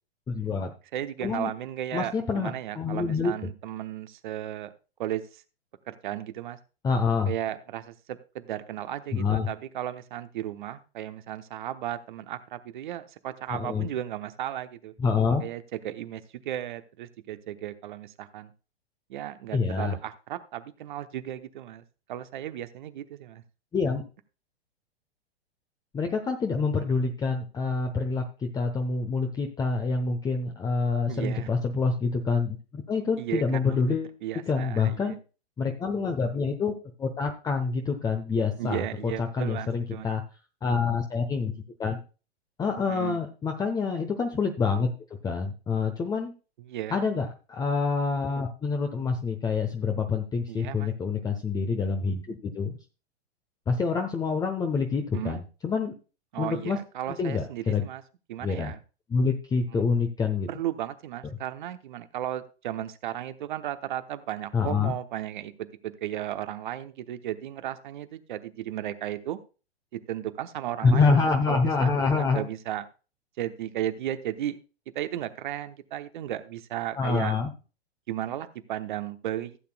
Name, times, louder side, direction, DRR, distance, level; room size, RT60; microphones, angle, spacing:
voice 1, 0.3-0.7 1.2-1.5 1.9-3.3 6.8-7.3 9.1-9.5 13.5-13.9 15.0-15.4 19.5-20.0 23.7-24.0 25.9-34.2 34.5-35.2 35.6-40.2 40.6-41.5 41.8-42.0 42.6-44.9 45.2-46.3 46.9-52.7 53.7-55.9 56.4-56.8 57.1-57.9 58.4-58.7 59.1-60.5 64.5-64.9 70.8-72.4 77.0-77.5, left 4 dB, 10° left, 5 dB, 0.9 m, -27 dB
voice 2, 0.9-4.7 5.0-5.4 5.9-6.6 7.2-14.9 15.4-18.5 19.1-21.8 22.1-23.4 31.1-31.5 33.2-33.8 34.2-35.1 38.6-40.1 42.9-43.2 46.6-47.0 50.5-50.9 55.1-55.4 56.3-58.0 58.3-58.8 59.7-59.8 60.5-69.4 69.9-72.8 73.4-74.6 74.9-77.3 78.1-79.6, right 12 dB, 50° right, 10 dB, 1.0 m, -35 dB
16.0 x 8.6 x 2.3 m, 0.33 s
figure-of-eight pair, 105°, 32 cm